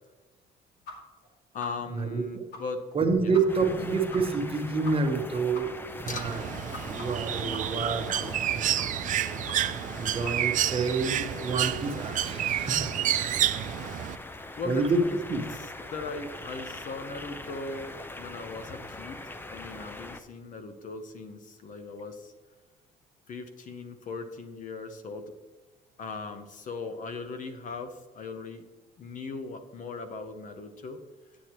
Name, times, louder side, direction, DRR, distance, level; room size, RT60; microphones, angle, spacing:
sound 1, 0.9-1.0 1.2-1.3 1.6-1.7 2.1-2.2 2.5-2.6 2.9-3.0 3.3-3.4 3.7-3.8 4.1-4.2 4.5-4.6 4.8-4.9 5.2-5.3 5.5-5.9 6.1-7.9 8.1-8.5 8.8-9.1 9.5-9.6 9.8-9.9 10.2-10.4, left 3 dB, 70° left, 2.3 m, -42 dB
voice 1, 1.5-2.8 3.1-3.3 3.9-4.0 6.1-6.4 14.6-15.2 15.5-22.3 23.3-25.3 26.0-28.6 29.0-31.0, left 4 dB, 50° left, 8 dB, 0.9 m, -39 dB
voice 2, 2.9-6.4 6.9-9.1 10.0-13.5 14.6-15.0 15.3-15.4, right 4 dB, 35° right, 5 dB, 1.1 m, -29 dB
sound 2, 3.5-20.2, left 2 dB, 10° left, 0.5 m, -42 dB
Bird, 6.1-14.2, right 11 dB, 50° right, 0.4 m, -29 dB
9.5 x 8.3 x 3.0 m, 1.2 s
cardioid pair, 110°, 17 cm